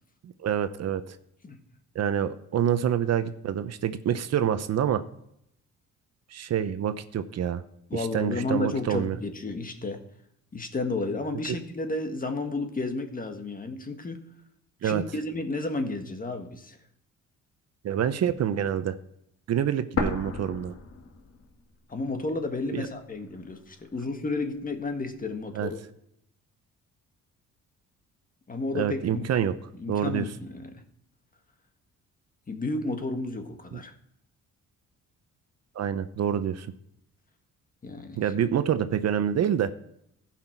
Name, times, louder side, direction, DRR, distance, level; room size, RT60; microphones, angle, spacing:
voice 1, 0.2-1.2 1.9-5.0 6.3-7.6 7.9-9.2 14.8-15.0 17.8-18.9 19.5-20.7 22.7-22.9 25.5-25.7 28.7-29.5 29.9-30.3 33.7-33.8 35.8-36.7 38.2-39.7, right 9 dB, 60° right, 11 dB, 0.8 m, -27 dB
voice 2, 7.9-10.0 10.5-14.2 14.8-16.8 21.9-25.8 28.5-29.5 29.8-30.7 32.5-33.9 37.8-38.2, left 2 dB, 30° left, 6 dB, 1.7 m, -32 dB
sound 1, 20.0-21.9 22.2-22.3 23.0-24.0, left 4 dB, 50° left, 1.8 m, -33 dB
15.0 x 5.9 x 4.6 m, 0.75 s
cardioid pair, 90°, 30 cm